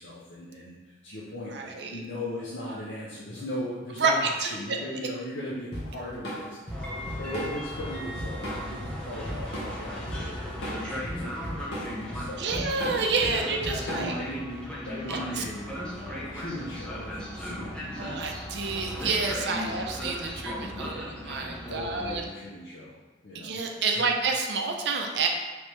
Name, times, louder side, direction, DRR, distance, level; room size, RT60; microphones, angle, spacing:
voice 1, 0.0-12.7 13.3-18.2 19.6-19.9 20.7-21.1 21.7-23.0 23.2-23.6 24.0-24.1, left 1 dB, 80° left, -7 dB, 0.7 m, -38 dB
voice 2, 1.5-2.0 4.0-4.5 12.4-14.1 15.1-15.4 18.0-22.2 23.3-25.3, right 4 dB, 65° right, 2 dB, 0.5 m, -29 dB
Drum kit / Drum, 5.7-14.3, equal, 60° left, 1.2 m, -36 dB
Train, 6.7-22.2, equal, 5° left, 0.5 m, -37 dB
4.4 x 3.3 x 3.2 m, 1.2 s
head